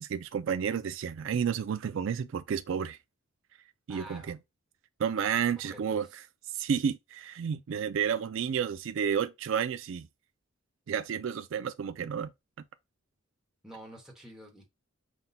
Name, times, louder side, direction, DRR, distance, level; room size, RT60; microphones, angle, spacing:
voice 1, 0.0-3.0 3.9-4.4 5.0-6.2 6.5-10.1 10.9-12.3, right 7 dB, 65° right, 0.3 m, -31 dB
voice 2, 3.9-4.4 5.6-6.0 13.6-14.7, right 1 dB, 5° right, 1.1 m, -48 dB
5.9 x 2.2 x 4.0 m
head